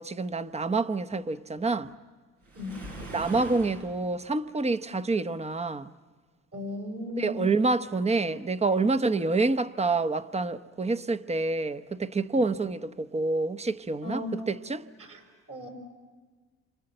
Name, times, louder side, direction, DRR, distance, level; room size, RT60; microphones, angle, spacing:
voice 1, 0.0-1.9 3.1-5.9 7.2-14.9, right 3 dB, 20° right, 0.9 m, -27 dB
Waves surf, 2.4-3.9, right 1 dB, 85° right, 7.9 m, -41 dB
voice 2, 6.5-7.4 14.0-14.3 15.0-15.2 15.5-15.7, left 2 dB, 50° right, 6.3 m, -36 dB
29.0 x 25.5 x 7.9 m
cardioid pair, 90°, 30 cm